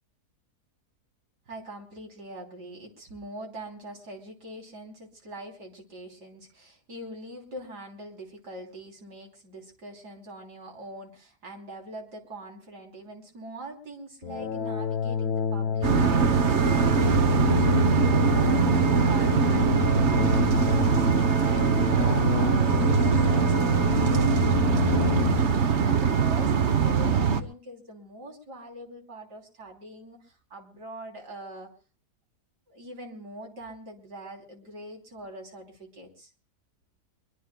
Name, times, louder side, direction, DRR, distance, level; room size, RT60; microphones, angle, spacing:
voice 1, 1.5-31.7 32.7-36.3, right 1 dB, 90° right, 2 dB, 3.7 m, -43 dB
sound 1, 14.2-25.5, left 6 dB, 70° left, 1.4 m, -28 dB
sound 2, 15.8-27.4, right 6 dB, 50° right, 1.1 m, -22 dB
23.5 x 22.5 x 2.2 m, 0.35 s
omnidirectional pair, 1.7 m